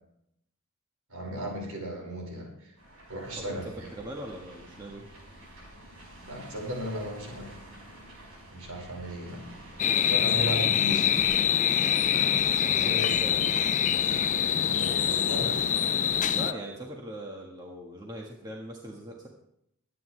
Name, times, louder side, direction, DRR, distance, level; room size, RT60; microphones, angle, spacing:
voice 1, 1.1-2.7 3.1-3.9 6.2-7.6 8.5-9.5 10.0-11.3 12.6-13.2 14.6-15.7, equal, 85° right, -1 dB, 5.6 m, -36 dB
sound 1, 2.8-16.3, right 1 dB, 70° right, 6.4 m, -49 dB
voice 2, 3.4-5.1 12.7-13.8 16.3-19.3, right 1 dB, 20° right, -1 dB, 1.6 m, -41 dB
sound 2, 9.8-16.5, left 9 dB, 35° left, 0.4 m, -25 dB
23.0 x 9.4 x 3.3 m, 0.78 s
head